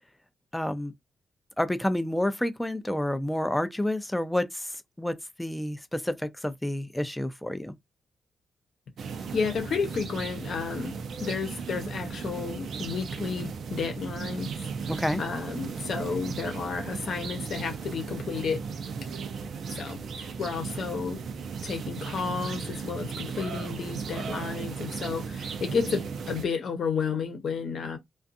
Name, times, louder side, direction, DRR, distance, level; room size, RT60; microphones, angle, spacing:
voice 1, 0.5-0.9 1.6-4.5 5.0-6.2 6.4-7.7 14.9-15.2, left 1 dB, 5° left, 0.4 m, -29 dB
sound 1, 9.0-26.4, right 5 dB, 70° right, 0.5 m, -36 dB
voice 2, 9.3-10.9 11.2-14.5 14.9-18.6 19.7-21.2 21.6-28.0, left 5 dB, 65° left, 0.8 m, -32 dB
2.4 x 2.3 x 2.6 m
cardioid pair, 100°, 0 cm